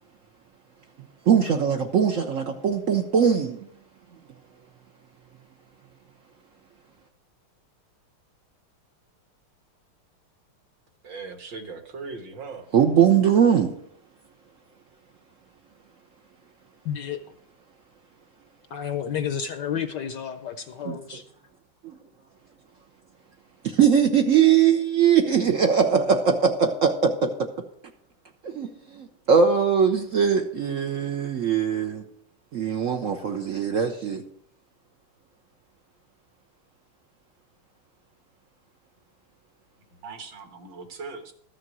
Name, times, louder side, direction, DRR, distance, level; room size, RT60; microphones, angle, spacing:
voice 1, 1.3-3.6 12.7-13.7 20.8-21.2 21.8-21.9 23.6-27.3 28.4-32.0 32.5-34.2, right 7 dB, 75° right, 0.7 m, -21 dB
voice 2, 11.0-12.7 40.0-41.3, right 4 dB, 60° right, 2.0 m, -39 dB
voice 3, 16.8-17.2 18.7-21.2, left 8 dB, 70° left, 1.1 m, -31 dB
13.0 x 6.7 x 6.1 m
omnidirectional pair, 2.4 m